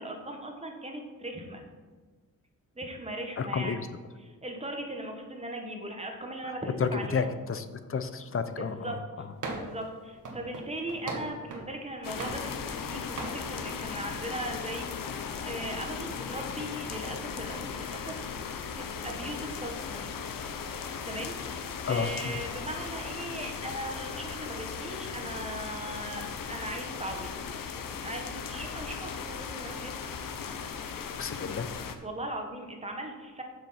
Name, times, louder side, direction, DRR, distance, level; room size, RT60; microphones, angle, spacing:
voice 1, 0.0-1.6 2.8-3.9 4.2-7.3 8.6-9.0 9.5-14.9 15.4-18.1 18.7-20.1 21.0-27.3 28.0-30.2 32.0-33.4, right 1 dB, 20° right, 3 dB, 1.2 m, -39 dB
voice 2, 3.4-3.9 6.4-9.3 21.8-22.4 31.2-31.7, left 5 dB, 40° left, 10 dB, 0.6 m, -32 dB
sound 1, 9.4-9.8 10.2-11.7 12.2-12.9 13.2-13.4, right 2 dB, 70° right, 1.5 m, -38 dB
sound 2, 12.0-31.9, left 6 dB, 85° left, 0.8 m, -37 dB
7.3 x 6.3 x 5.6 m, 1.4 s
wide cardioid pair, 135°, 33 cm